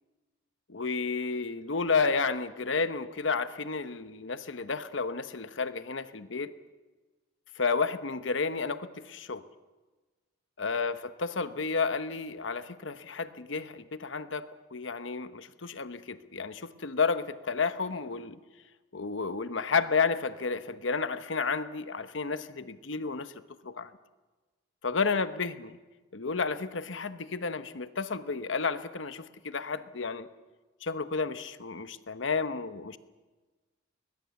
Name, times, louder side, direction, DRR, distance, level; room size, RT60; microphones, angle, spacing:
voice 1, 0.7-6.5 7.6-9.4 10.6-14.4 14.7-18.4 18.9-23.3 23.6-23.9 24.8-25.8 26.1-30.3 30.8-33.0, left 4 dB, 65° left, 12 dB, 1.0 m, -31 dB
21.5 x 20.5 x 7.1 m, 1.3 s
head